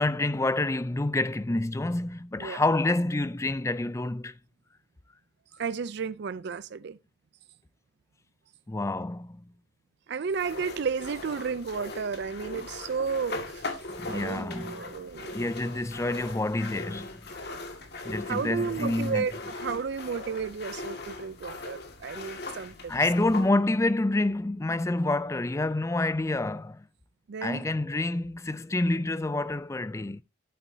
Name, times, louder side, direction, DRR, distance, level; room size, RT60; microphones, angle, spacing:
voice 1, 0.0-4.4 8.7-9.4 14.0-14.8 15.3-17.4 18.0-19.3 21.5-21.6 22.9-26.9 27.4-30.2, left 2 dB, 15° left, 0.4 m, -28 dB
voice 2, 5.6-7.0 10.1-13.8 14.1-15.3 18.3-22.9 27.3-27.7, right 5 dB, 55° right, 0.4 m, -33 dB
sound 1, 10.3-23.5, left 3 dB, 55° left, 2.0 m, -40 dB
11.0 x 8.5 x 2.7 m
head